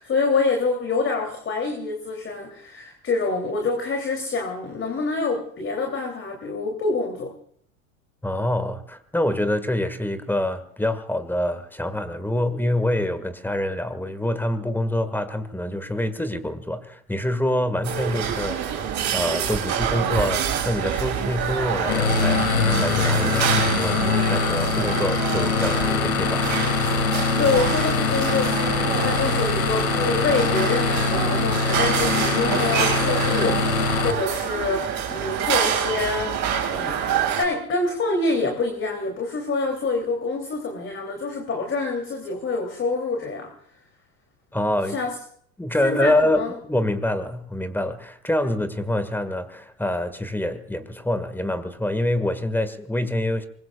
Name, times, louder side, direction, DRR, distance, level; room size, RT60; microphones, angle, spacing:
voice 1, 0.0-7.3 27.4-43.5 44.9-45.1 45.8-46.5, left 3 dB, 30° left, 3.2 m, -26 dB
voice 2, 8.2-26.5 44.5-45.0 45.6-53.5, left 1 dB, 5° left, 1.9 m, -26 dB
sound 1, 17.8-37.4, right 8 dB, 45° right, 5.7 m, -26 dB
sound 2, 21.9-34.1, left 5 dB, 85° left, 2.1 m, -23 dB
25.0 x 21.5 x 2.4 m
hypercardioid pair, 90°, 42 cm